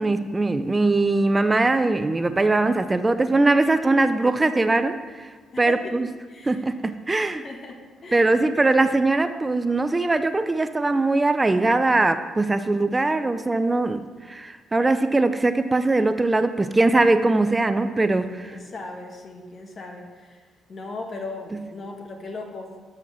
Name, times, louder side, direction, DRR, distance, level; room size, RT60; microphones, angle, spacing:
voice 1, 0.0-5.3 5.6-6.1 6.4-7.4 8.1-18.6, right 2 dB, 20° right, 10 dB, 0.4 m, -21 dB
voice 2, 5.5-5.9 6.3-6.7 7.4-8.3 18.4-20.4 20.7-22.7, left 3 dB, 45° left, 3 dB, 1.2 m, -37 dB
8.3 x 5.7 x 6.2 m, 1.5 s
cardioid pair, 90°, 0 cm